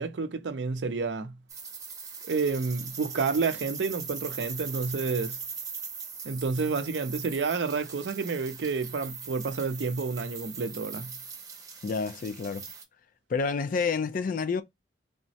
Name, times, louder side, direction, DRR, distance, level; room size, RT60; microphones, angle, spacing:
voice 1, 0.0-1.3 2.3-5.4 6.2-11.1, right 4 dB, 80° right, 0.5 m, -30 dB
sound 1, 1.5-12.8, right 5 dB, 20° right, 0.7 m, -40 dB
voice 2, 11.8-12.6 13.3-14.6, left 5 dB, 50° left, 0.4 m, -29 dB
3.4 x 2.0 x 2.7 m
head